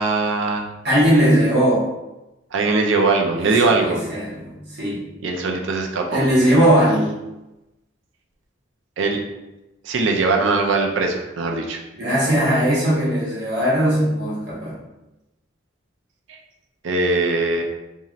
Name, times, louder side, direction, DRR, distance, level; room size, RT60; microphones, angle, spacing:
voice 1, 0.0-0.7 2.5-4.1 5.2-6.3 9.0-9.2 9.8-11.8 16.8-17.6, right 3 dB, 75° right, 2 dB, 0.4 m, -20 dB
voice 2, 0.8-1.9 3.4-3.5 3.8-5.0 6.1-7.2 11.9-14.8, equal, 55° right, -6 dB, 1.0 m, -19 dB
3.0 x 2.7 x 2.4 m, 0.98 s
head